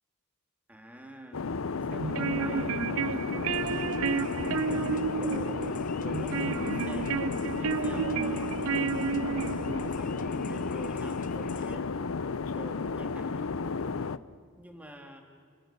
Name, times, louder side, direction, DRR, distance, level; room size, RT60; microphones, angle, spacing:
voice 1, 0.7-4.9 5.2-8.6 9.3-12.0 12.6-13.5 14.6-15.2, equal, 5° right, 4 dB, 2.0 m, -45 dB
sound 1, 1.3-14.2, left 4 dB, 80° left, 0.7 m, -33 dB
sound 2, 1.9-9.9, right 6 dB, 80° right, 0.5 m, -32 dB
sound 3, 3.4-11.7, left 4 dB, 40° left, 1.1 m, -48 dB
28.5 x 17.5 x 6.7 m, 2.2 s
head